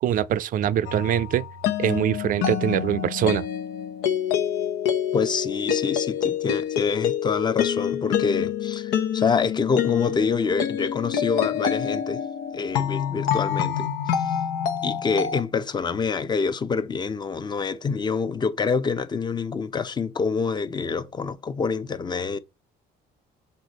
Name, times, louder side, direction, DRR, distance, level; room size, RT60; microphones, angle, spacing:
voice 1, 0.0-1.4 1.8-3.5, right 10 dB, 55° right, 0.5 m, -23 dB
sound 1, 0.9-15.4, left 9 dB, 90° left, 0.9 m, -27 dB
voice 2, 5.1-12.2 12.5-14.4 14.8-22.4, left 5 dB, 25° left, 0.6 m, -26 dB
6.7 x 3.9 x 4.1 m
cardioid pair, 110°, 17 cm